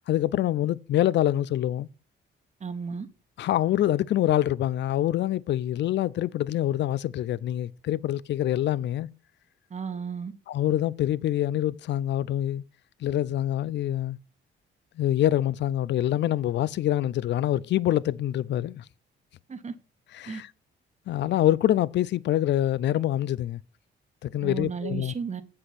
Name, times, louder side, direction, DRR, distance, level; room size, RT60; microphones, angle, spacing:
voice 1, 0.1-1.9 3.4-9.1 10.5-12.6 13.0-14.2 15.0-18.8 20.1-20.5 21.1-23.6 24.2-25.1, left 12 dB, 65° left, 0.5 m, -25 dB
voice 2, 2.6-3.1 9.7-10.3 19.5-19.7 20.3-20.4 24.4-25.4, right 6 dB, 35° right, 1.3 m, -34 dB
8.0 x 7.6 x 4.2 m
cardioid pair, 90°, 20 cm